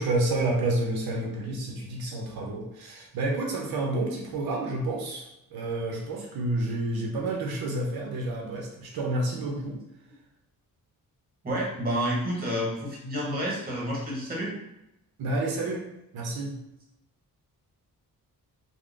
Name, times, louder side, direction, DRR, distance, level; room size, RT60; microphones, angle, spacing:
voice 1, 0.0-9.8 15.2-15.9 16.1-16.6, right 2 dB, 80° right, -1 dB, 0.7 m, -29 dB
voice 2, 11.4-14.5, equal, 25° right, -4 dB, 0.9 m, -29 dB
3.6 x 2.1 x 2.4 m, 0.88 s
wide cardioid pair, 140°, 36 cm